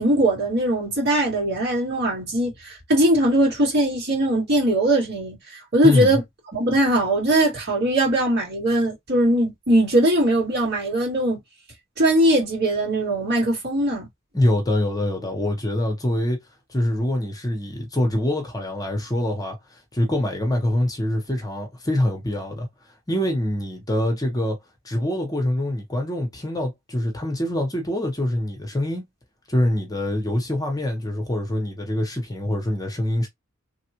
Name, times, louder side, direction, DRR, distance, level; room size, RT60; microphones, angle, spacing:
voice 1, 0.0-5.4 5.7-6.2 6.5-11.4 12.0-14.1, right 1 dB, 55° right, 2.3 m, -20 dB
voice 2, 5.8-6.2 14.3-16.4 16.7-22.7 23.1-24.6 24.8-29.0 29.5-33.3, left 1 dB, 20° left, 0.9 m, -24 dB
3.4 x 2.4 x 2.9 m
head